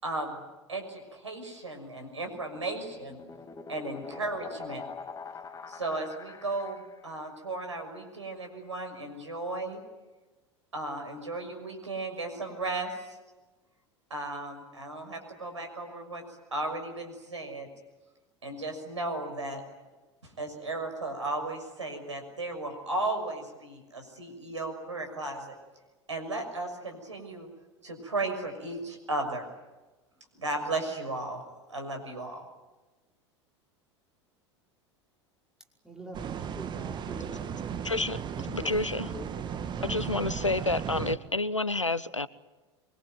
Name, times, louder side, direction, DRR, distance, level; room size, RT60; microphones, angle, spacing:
voice 1, 0.0-0.4 0.7-3.2 3.7-4.8 5.7-9.8 10.7-13.1 14.1-16.2 16.5-17.7 18.4-19.6 20.2-25.5 26.1-27.5 27.8-29.5 30.4-31.4 31.7-32.4, right 2 dB, 80° right, 5 dB, 6.3 m, -35 dB
sound 1, 2.3-7.1, left 4 dB, 20° left, 2.1 m, -44 dB
voice 2, 35.8-37.5 38.3-39.3 39.7-39.9 40.4-40.7, equal, 5° right, 1 dB, 5.5 m, -45 dB
big-waves-at-anchors, 36.1-41.2, right 8 dB, 30° right, 1.8 m, -36 dB
voice 3, 37.8-39.1 39.9-42.3, left 2 dB, 85° left, 19 dB, 0.8 m, -29 dB
24.5 x 24.0 x 9.4 m, 1.2 s
figure-of-eight pair, 80°, 15 cm